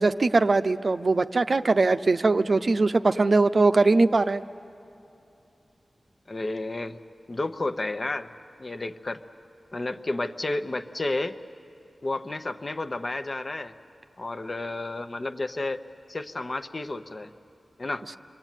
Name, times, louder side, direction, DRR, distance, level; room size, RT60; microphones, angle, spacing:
voice 1, 0.0-4.4, right 3 dB, 55° right, 10 dB, 0.6 m, -21 dB
voice 2, 6.3-7.0 7.3-8.3 8.6-9.2 9.7-11.4 12.0-13.7 14.2-15.8 16.1-17.3 17.8-18.0, left 2 dB, 45° left, 8 dB, 0.9 m, -31 dB
29.0 x 23.0 x 9.1 m, 2.8 s
wide cardioid pair, 65°, 0 cm